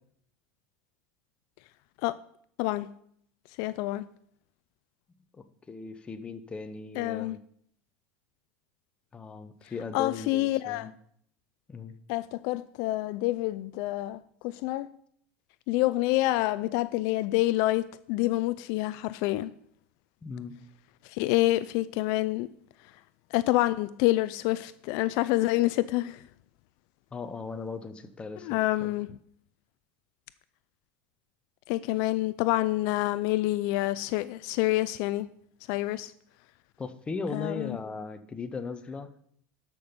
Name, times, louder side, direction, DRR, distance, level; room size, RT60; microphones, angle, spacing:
voice 1, 3.6-4.1 7.0-7.4 9.9-10.9 12.1-14.9 15.7-19.5 21.0-22.5 23.3-26.2 28.4-29.1 31.7-35.3 35.7-36.1 37.3-37.8, left 17 dB, 60° left, 0.4 m, -27 dB
voice 2, 5.3-7.4 9.1-10.9 11.7-11.9 20.2-20.6 27.1-28.9 36.8-39.1, left 4 dB, 15° left, 0.8 m, -38 dB
12.5 x 6.1 x 5.2 m
supercardioid pair, 145°, 7 cm